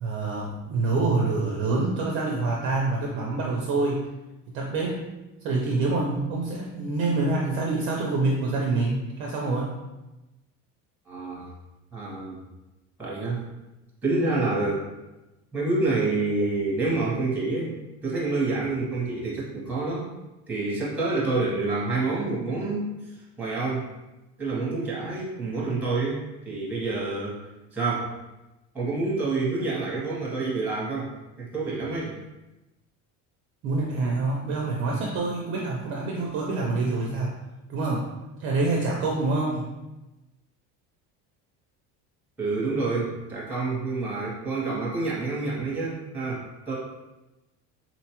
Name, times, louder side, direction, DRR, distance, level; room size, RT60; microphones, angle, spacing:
voice 1, 0.0-4.0 4.5-5.0 5.4-9.7 33.6-37.3 37.7-38.1 38.4-39.6, right 3 dB, 40° right, -2 dB, 0.4 m, -26 dB
voice 2, 11.1-11.5 11.9-12.4 13.0-13.4 14.0-14.8 15.5-17.7 18.0-20.1 20.5-22.9 23.4-23.9 24.4-27.4 27.7-28.1 28.7-31.1 31.4-32.2 42.4-46.8, right 3 dB, 5° right, -6 dB, 0.7 m, -27 dB
4.1 x 2.2 x 2.8 m, 1.0 s
cardioid pair, 175°, 33 cm